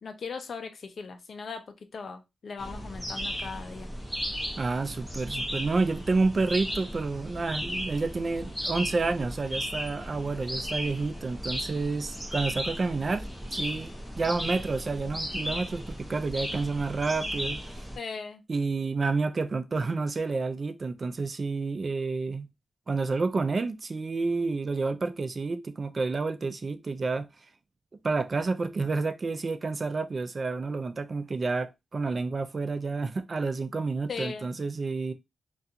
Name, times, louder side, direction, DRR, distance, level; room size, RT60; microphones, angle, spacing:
voice 1, 0.0-3.9 18.0-18.4 34.1-34.5, left 5 dB, 65° left, 0.4 m, -38 dB
sound 1, 2.6-18.0, equal, 10° left, 0.9 m, -36 dB
voice 2, 4.6-17.6 18.5-22.5 22.9-27.3 28.0-35.1, right 3 dB, 40° right, 0.3 m, -29 dB
2.4 x 2.3 x 2.7 m
wide cardioid pair, 105°, 0 cm